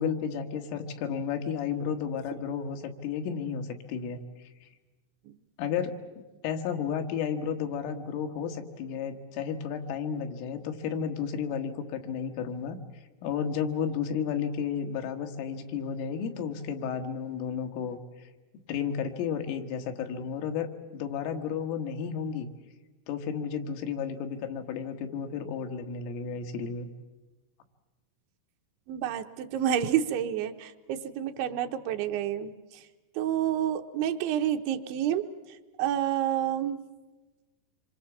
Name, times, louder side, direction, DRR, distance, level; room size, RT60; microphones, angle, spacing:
voice 1, 0.0-4.5 5.6-6.0 6.4-12.8 13.2-18.3 18.7-22.5 23.1-26.9, left 7 dB, 85° left, 5 dB, 4.1 m, -32 dB
voice 2, 28.9-32.8 33.2-35.3 35.8-36.8, right 10 dB, 75° right, 6 dB, 3.1 m, -29 dB
26.5 x 24.5 x 7.2 m, 1.2 s
omnidirectional pair, 5.6 m